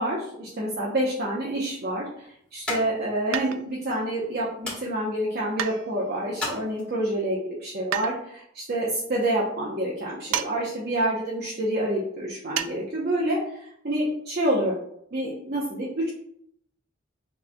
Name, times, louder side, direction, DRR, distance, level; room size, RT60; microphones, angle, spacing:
voice 1, 0.0-2.3 2.5-13.6 13.8-14.8 15.1-16.1, right 1 dB, 50° right, -5 dB, 0.8 m, -27 dB
sound 1, 1.0-7.3, left 2 dB, 5° left, 1.5 m, -40 dB
sound 2, 3.3-3.9 5.6-6.3 7.9-8.2 10.3-10.6 10.8-10.9 12.6-12.8 13.1-13.2, right 10 dB, 75° right, 0.3 m, -30 dB
6.0 x 3.2 x 2.2 m, 0.70 s
head